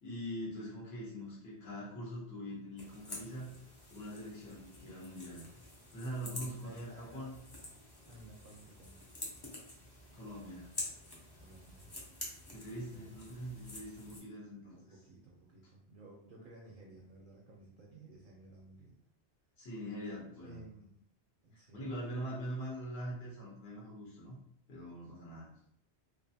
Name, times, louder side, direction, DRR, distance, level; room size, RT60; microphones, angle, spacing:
voice 1, 0.0-3.5 3.9-5.5 5.9-7.4 10.1-10.7 12.5-14.9 19.6-20.6 21.5-24.4 24.7-25.5, equal, 70° left, -5 dB, 1.1 m, -43 dB
sound 1, 2.8-14.2, left 2 dB, 30° left, 0.5 m, -48 dB
voice 2, 6.2-7.3 8.1-9.0 11.4-11.9 12.9-13.1 14.7-19.0 20.4-21.0 21.4-21.9, right 2 dB, 60° right, -3 dB, 0.6 m, -55 dB
2.5 x 2.4 x 2.6 m, 0.69 s
omnidirectional pair, 1.1 m